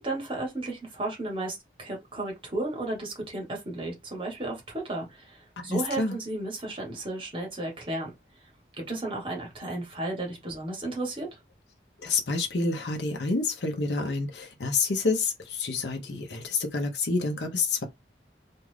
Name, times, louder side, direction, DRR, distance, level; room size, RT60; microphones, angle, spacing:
voice 1, 0.0-8.1 8.8-11.4, right 2 dB, 30° right, 1.2 m, -34 dB
voice 2, 5.6-6.2 12.0-17.9, left 3 dB, 80° left, 0.7 m, -28 dB
2.5 x 2.4 x 3.2 m
head